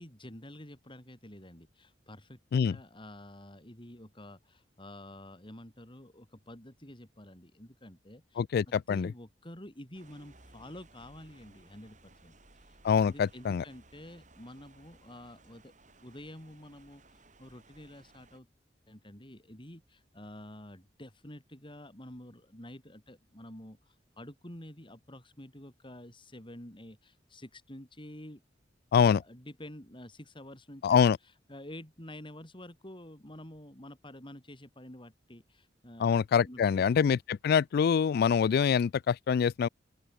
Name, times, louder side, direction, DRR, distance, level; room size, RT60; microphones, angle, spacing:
voice 1, 0.0-12.8 13.1-15.7 16.0-18.5 18.9-28.4 28.9-36.8, left 1 dB, 25° left, 6.1 m, -49 dB
voice 2, 8.4-9.1 12.8-13.6 28.9-29.2 30.8-31.2 36.0-39.7, left 7 dB, 55° left, 0.3 m, -25 dB
sound 1, 9.9-18.4, right 2 dB, 40° right, 7.9 m, -60 dB
open air
head